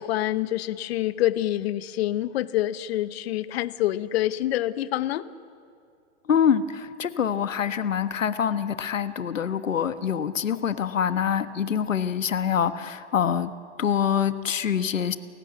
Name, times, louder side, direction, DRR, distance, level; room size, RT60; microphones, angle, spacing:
voice 1, 0.0-5.3, left 14 dB, 55° left, 15 dB, 1.0 m, -26 dB
voice 2, 6.3-13.5 13.8-15.2, left 8 dB, 85° left, 11 dB, 1.3 m, -25 dB
29.5 x 16.0 x 8.2 m, 2.3 s
hypercardioid pair, 120°, 38 cm